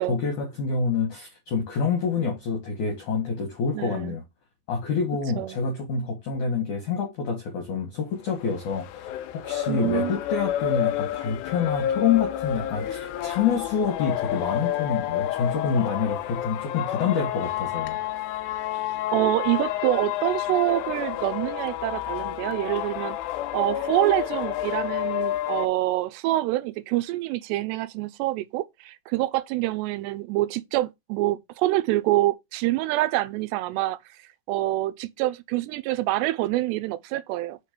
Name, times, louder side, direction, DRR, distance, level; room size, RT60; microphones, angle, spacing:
voice 1, 0.0-4.2 4.7-9.1 9.3-18.0, left 5 dB, 55° left, 2.5 m, -27 dB
voice 2, 3.7-4.2 5.4-5.6 9.7-10.2 19.1-23.2 23.5-34.0 34.5-37.6, right 16 dB, 85° right, 2.6 m, -26 dB
sound 1, 8.3-25.7, left 12 dB, 80° left, 2.7 m, -29 dB
6.5 x 4.5 x 5.1 m
omnidirectional pair, 5.1 m